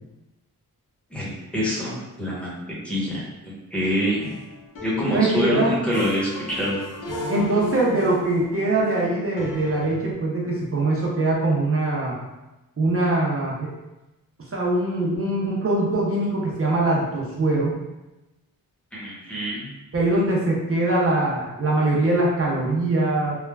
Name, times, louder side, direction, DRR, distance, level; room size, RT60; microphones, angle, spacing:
voice 1, 1.1-2.6 2.8-4.3 4.8-6.8 18.9-19.7, equal, 5° left, -7 dB, 0.9 m, -26 dB
sound 1, 3.9-9.9, left 1 dB, 60° left, 0.6 m, -36 dB
voice 2, 5.1-5.7 7.3-12.2 12.8-13.7 14.5-17.8 19.9-23.4, right 2 dB, 40° right, -4 dB, 0.5 m, -22 dB
3.1 x 2.1 x 2.2 m, 1.0 s
wide cardioid pair, 125°, 36 cm